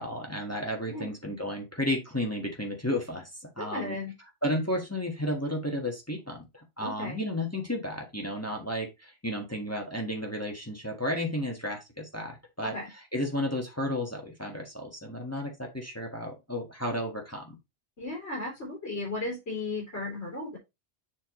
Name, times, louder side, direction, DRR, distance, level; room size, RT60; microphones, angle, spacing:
voice 1, 0.0-4.0 4.4-17.6, left 1 dB, 15° left, 1 dB, 1.5 m, -33 dB
voice 2, 3.6-4.1 6.8-7.2 12.6-12.9 18.0-20.6, left 2 dB, 85° left, -3 dB, 3.3 m, -35 dB
7.4 x 5.8 x 3.1 m, 0.22 s
omnidirectional pair, 1.1 m